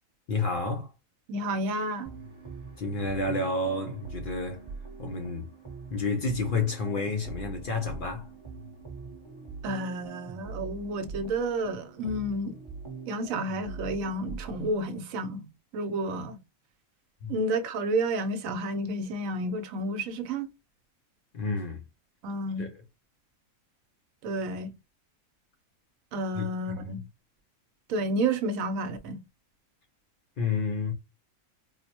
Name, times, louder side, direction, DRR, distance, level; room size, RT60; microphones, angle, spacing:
voice 1, 0.3-0.9 2.8-4.6 5.0-5.5 5.9-8.3 17.2-17.3 21.3-21.8 22.6-22.7 26.3-27.0 30.4-30.9, left 3 dB, 65° left, 0.5 m, -30 dB
voice 2, 1.3-2.1 9.6-12.5 13.1-15.4 15.7-16.4 17.3-20.5 22.2-22.7 24.2-24.7 26.1-27.0 27.9-29.2, right 1 dB, 75° right, 1.0 m, -30 dB
sound 1, 2.1-14.9, right 4 dB, 25° right, 0.9 m, -43 dB
4.0 x 2.1 x 2.8 m
omnidirectional pair, 1.5 m